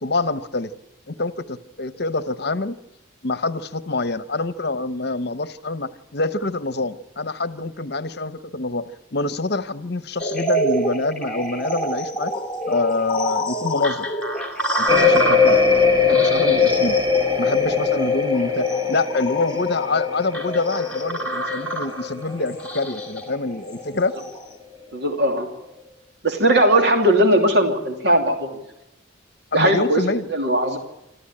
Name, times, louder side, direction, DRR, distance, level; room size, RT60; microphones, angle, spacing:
voice 1, 0.0-0.7 1.1-2.8 3.2-8.8 9.1-12.3 12.7-14.1 14.8-15.6 16.1-16.9 17.4-24.2 29.5-30.3, left 3 dB, 55° left, 14 dB, 1.0 m, -26 dB
sound 1, 10.2-24.4, right 1 dB, 5° left, 2.4 m, -28 dB
sound 2, 14.9-23.5 23.8-24.3, left 5 dB, 20° right, 3.3 m, -21 dB
voice 2, 24.9-25.5 26.2-28.6 29.5-30.0 30.3-30.8, right 1 dB, 55° right, 4 dB, 2.9 m, -18 dB
26.5 x 14.0 x 8.8 m, 0.90 s
head